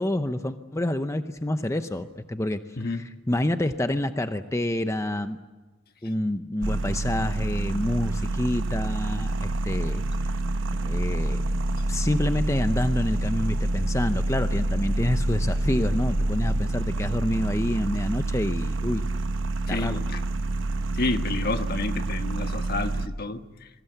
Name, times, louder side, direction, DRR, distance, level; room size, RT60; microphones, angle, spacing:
voice 1, 0.0-2.6 2.8-5.4 6.0-10.0 10.7-11.4 11.9-19.0 19.7-20.0, left 1 dB, 15° left, 9 dB, 0.7 m, -28 dB
sound 1, 6.6-23.1, right 2 dB, 70° right, 1.0 m, -27 dB
voice 2, 19.7-20.2 20.9-23.7, left 3 dB, 50° left, 8 dB, 1.3 m, -30 dB
28.0 x 22.0 x 8.0 m, 1.2 s
head